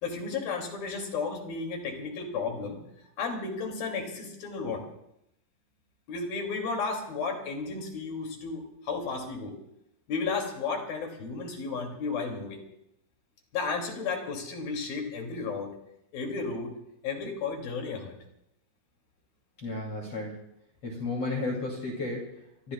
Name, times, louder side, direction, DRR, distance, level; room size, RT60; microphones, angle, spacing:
voice 1, 0.0-2.8 3.2-4.8 6.1-9.6 10.1-12.6 13.5-15.8 16.1-16.8 17.0-18.1, left 4 dB, 70° left, 2 dB, 4.6 m, -33 dB
voice 2, 19.6-20.5 20.8-22.7, left 2 dB, 40° left, -2 dB, 3.6 m, -33 dB
27.0 x 21.5 x 2.4 m, 0.80 s
omnidirectional pair, 4.3 m